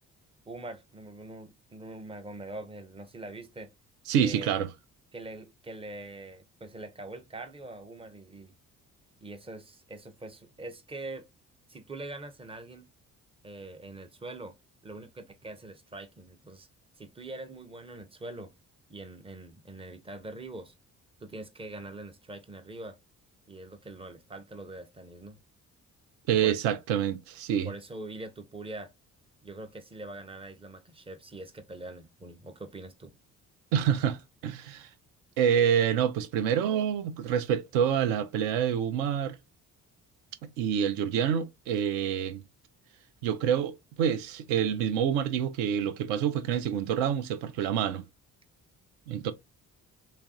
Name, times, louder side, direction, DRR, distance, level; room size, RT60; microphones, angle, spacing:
voice 1, 0.5-3.7 4.2-4.5 5.1-8.5 9.2-11.3 11.7-12.9 13.4-14.6 14.8-16.7 17.0-18.5 18.9-20.7 21.2-23.0 23.5-25.4 26.4-26.6 27.6-28.9 29.4-33.1, right 2 dB, 15° right, 0.5 m, -43 dB
voice 2, 4.1-4.7 26.3-27.7 33.7-34.9 35.4-39.4 40.4-42.4 43.2-48.1 49.1-49.3, right 8 dB, 60° right, 0.5 m, -27 dB
3.2 x 2.3 x 2.4 m
figure-of-eight pair, 40°, 44 cm